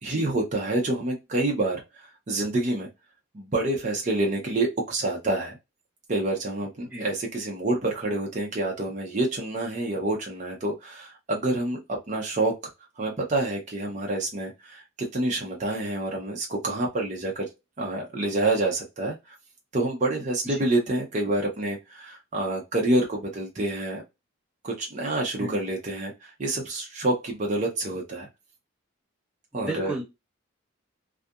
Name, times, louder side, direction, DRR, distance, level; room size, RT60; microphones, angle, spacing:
voice 1, 0.0-2.9 3.3-5.6 6.1-12.7 13.0-17.5 17.8-19.3 19.7-24.0 24.6-28.3 29.5-30.0, right 2 dB, 35° right, -1 dB, 0.5 m, -27 dB
voice 2, 29.5-30.0, right 1 dB, 5° right, -4 dB, 0.8 m, -34 dB
2.6 x 2.4 x 2.3 m, 0.23 s
head